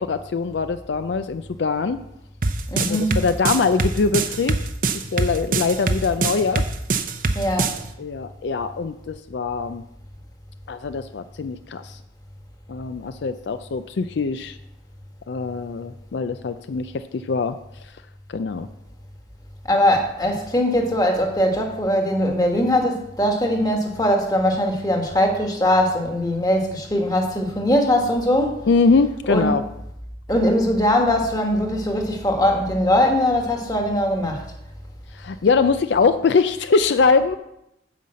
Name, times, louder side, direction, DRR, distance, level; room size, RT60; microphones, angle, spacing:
voice 1, 0.0-2.0 2.8-4.6 5.1-6.7 8.0-9.8 10.7-12.0 12.7-14.6 15.3-17.6 18.3-18.7 28.7-29.6 35.1-37.3, left 4 dB, 70° left, 10 dB, 0.4 m, -22 dB
sound 1, 2.4-7.8, right 3 dB, 45° right, 0.7 m, -22 dB
voice 2, 2.7-3.2 7.3-7.7 19.7-28.6 29.3-29.5 30.3-34.4, left 1 dB, 20° left, 2 dB, 1.5 m, -21 dB
9.1 x 5.6 x 7.5 m, 0.83 s
head